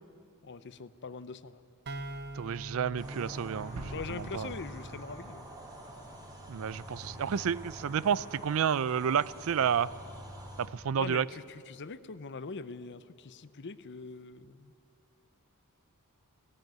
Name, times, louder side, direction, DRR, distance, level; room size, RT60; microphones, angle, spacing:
voice 1, 0.4-1.6 3.8-5.4 11.0-14.7, left 4 dB, 55° left, 15 dB, 0.7 m, -42 dB
sound 1, 1.9-5.5, right 1 dB, 50° right, 1.0 m, -44 dB
voice 2, 2.3-4.5 6.5-9.9 10.6-11.3, right 7 dB, 70° right, 20 dB, 0.4 m, -30 dB
sound 2, 3.0-10.7, right 1 dB, 20° right, 3.0 m, -46 dB
sound 3, 3.8-6.4, right 2 dB, 90° right, 0.9 m, -47 dB
18.5 x 15.5 x 9.3 m, 2.4 s
head